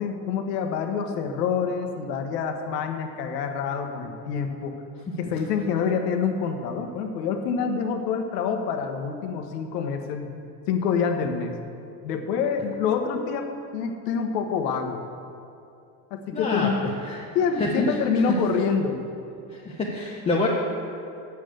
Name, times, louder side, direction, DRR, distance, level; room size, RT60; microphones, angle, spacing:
voice 1, 0.0-4.7 5.2-10.3 10.7-11.5 12.0-13.5 13.7-15.0 16.1-16.7 17.3-19.0, left 6 dB, 80° left, 5 dB, 1.2 m, -26 dB
voice 2, 16.3-16.7 17.1-17.3 17.6-18.0 18.3-18.4 19.5-20.5, left 3 dB, 15° left, -3 dB, 0.6 m, -27 dB
7.1 x 6.7 x 7.8 m, 2.6 s
supercardioid pair, 130°, 48 cm